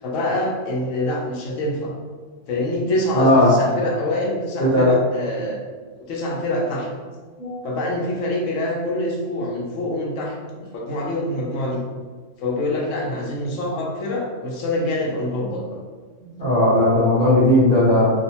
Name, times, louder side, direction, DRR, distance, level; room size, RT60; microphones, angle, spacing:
voice 1, 0.0-1.9 2.5-5.6 6.0-6.9 7.6-11.8 12.4-15.7, left 1 dB, 85° left, -2 dB, 1.0 m, -25 dB
voice 2, 3.2-3.5 4.6-4.8 7.4-7.6 16.4-18.1, left 1 dB, 55° left, -8 dB, 0.9 m, -16 dB
2.6 x 2.1 x 2.7 m, 1.5 s
omnidirectional pair, 1.3 m